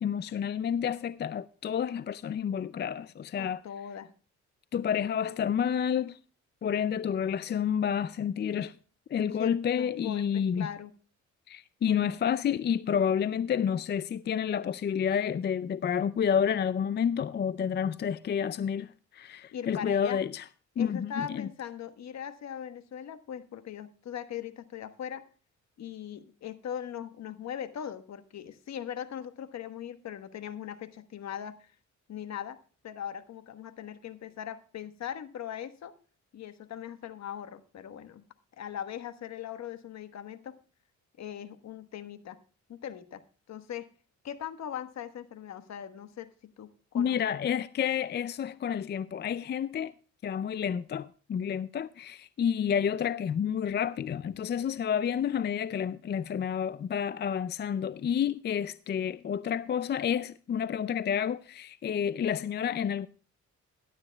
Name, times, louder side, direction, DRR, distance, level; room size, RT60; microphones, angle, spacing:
voice 1, 0.0-3.6 4.7-6.2 6.6-8.8 9.1-10.7 11.5-20.4 20.8-21.5 46.9-49.9 50.2-63.1, left 8 dB, 35° left, 0.4 m, -29 dB
voice 2, 3.4-4.1 9.3-10.9 19.5-20.2 20.8-25.2 25.8-31.7 32.1-32.6 32.8-35.9 36.3-38.3 38.6-40.5 41.2-42.4 42.7-43.2 43.5-43.9 44.2-47.3, left 9 dB, 60° left, 1.3 m, -40 dB
17.5 x 12.0 x 2.3 m
cardioid pair, 90°, 30 cm